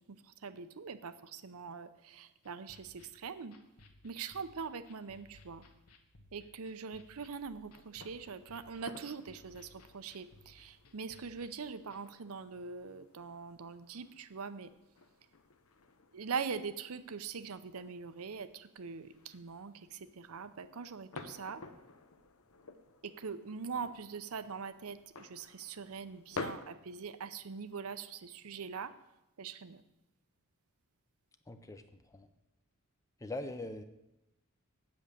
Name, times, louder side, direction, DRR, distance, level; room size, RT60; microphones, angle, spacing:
voice 1, 0.4-3.5 4.0-5.6 6.3-14.7 16.1-21.6 23.0-28.9 29.4-29.8, right 5 dB, 70° right, 13 dB, 0.6 m, -42 dB
sound 1, 2.4-12.0, left 2 dB, 85° left, 1.2 m, -62 dB
sound 2, 7.3-26.6, left 3 dB, 70° left, 0.8 m, -52 dB
voice 2, 31.5-31.8 32.1-32.3 33.2-33.8, left 2 dB, 15° left, 8 dB, 0.5 m, -41 dB
8.4 x 7.8 x 6.6 m, 0.92 s
head